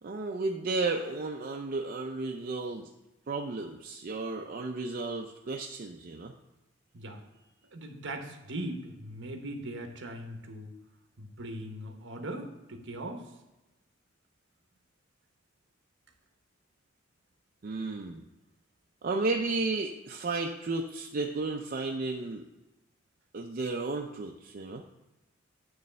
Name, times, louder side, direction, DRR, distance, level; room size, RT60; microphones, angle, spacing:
voice 1, 0.0-2.9 3.3-6.3 17.6-18.2 19.0-22.4 23.3-24.8, right 3 dB, 45° right, 1 dB, 0.5 m, -33 dB
voice 2, 7.7-10.7 11.2-13.3, right 1 dB, 65° right, 4 dB, 1.0 m, -40 dB
9.3 x 3.2 x 6.6 m, 1.0 s
head